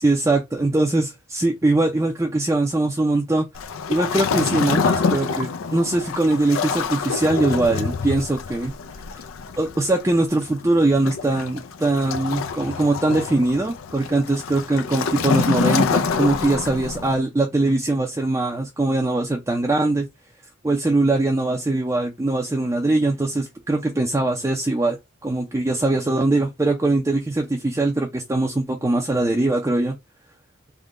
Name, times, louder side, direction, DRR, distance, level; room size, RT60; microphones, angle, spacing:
voice 1, 0.0-3.5 3.9-8.7 9.1-9.2 9.6-20.1 20.6-25.0 25.2-30.0, right 2 dB, 15° right, 0.4 m, -21 dB
Waves surf, 3.5-17.2, left 5 dB, 85° left, 0.4 m, -26 dB
3.6 x 2.2 x 3.6 m
head